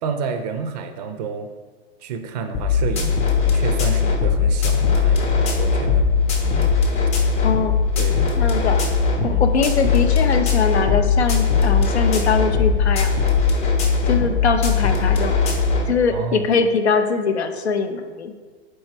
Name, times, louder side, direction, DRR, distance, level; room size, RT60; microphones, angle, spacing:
voice 1, 0.0-1.5 2.0-6.1 6.4-6.7 8.0-8.6 9.2-9.4 16.1-16.5, right 6 dB, 40° right, 7 dB, 0.4 m, -30 dB
sound 1, 2.5-15.9, left 5 dB, 20° left, 0.5 m, -19 dB
voice 2, 7.4-7.7 8.4-8.8 9.2-13.1 14.1-15.4 15.9-18.3, left 5 dB, 85° left, 7 dB, 0.5 m, -22 dB
4.3 x 3.1 x 3.1 m, 1.4 s
figure-of-eight pair, 100°, 32 cm